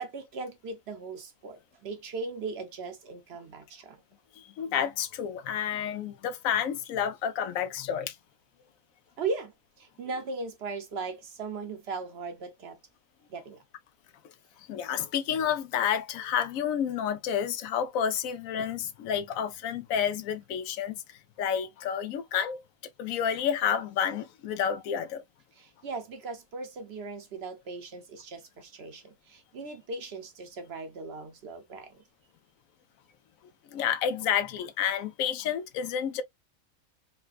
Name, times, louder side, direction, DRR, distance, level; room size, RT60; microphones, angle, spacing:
voice 1, 0.0-4.0 9.2-12.8 13.3-13.6 25.6-32.0, right 4 dB, 60° right, 0.8 m, -38 dB
voice 2, 4.4-8.2 14.7-21.0 21.4-22.6 23.0-25.2 33.7-36.2, left 8 dB, 85° left, 1.0 m, -30 dB
4.2 x 2.2 x 2.3 m
omnidirectional pair, 1.4 m